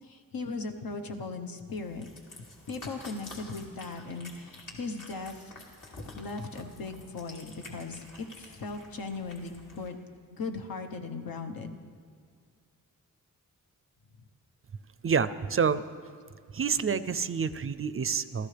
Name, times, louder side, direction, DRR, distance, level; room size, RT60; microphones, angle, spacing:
voice 1, 0.0-2.1 2.7-5.5 5.9-10.0 10.3-11.9, left 3 dB, 80° left, 5 dB, 1.2 m, -38 dB
Cat, 1.7-9.9, left 2 dB, 65° left, 2.5 m, -49 dB
voice 2, 15.0-15.8 16.5-18.5, right 6 dB, 40° right, 14 dB, 0.4 m, -28 dB
28.0 x 13.5 x 3.4 m, 2.1 s
wide cardioid pair, 170°, 34 cm